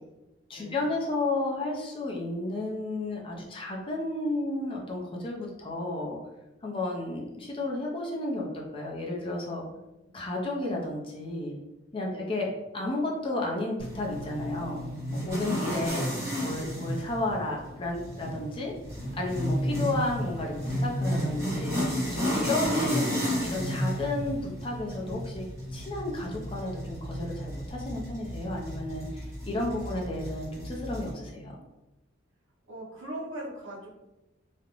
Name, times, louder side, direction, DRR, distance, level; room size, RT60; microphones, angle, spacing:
voice 1, 0.5-6.2 6.6-9.6 10.1-11.6 11.9-12.5 12.7-14.8 15.1-16.1 16.4-18.7 19.1-21.8 22.1-25.4 25.7-31.6, left 2 dB, 25° left, -1 dB, 0.4 m, -32 dB
sound 1, 13.8-31.1, equal, 15° right, 0.8 m, -32 dB
voice 2, 32.7-33.9, right 1 dB, 70° right, -4 dB, 0.8 m, -41 dB
2.4 x 2.0 x 2.9 m, 0.99 s
head